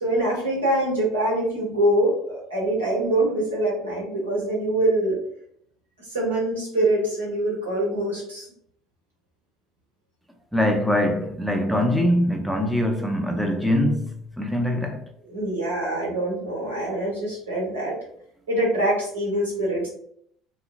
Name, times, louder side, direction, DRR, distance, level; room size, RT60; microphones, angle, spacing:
voice 1, 0.0-5.2 6.1-8.4 15.2-18.0 18.5-19.9, right 1 dB, 80° right, 1.1 m, -24 dB
voice 2, 10.5-15.0, left 1 dB, ahead, 0.4 m, -23 dB
2.7 x 2.2 x 2.4 m
figure-of-eight pair, 60°, 0 cm